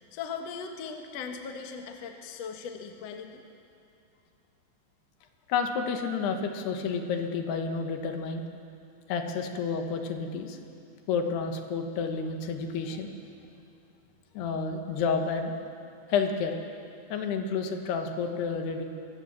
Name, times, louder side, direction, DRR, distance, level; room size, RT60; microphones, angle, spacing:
voice 1, 0.1-3.4, left 6 dB, 55° left, 4 dB, 1.8 m, -39 dB
voice 2, 5.5-8.4 9.1-10.6 11.1-13.1 14.3-15.5 16.1-16.6 17.1-18.9, left 5 dB, 75° left, 5 dB, 3.3 m, -30 dB
24.5 x 15.0 x 7.2 m, 2.6 s
omnidirectional pair, 4.8 m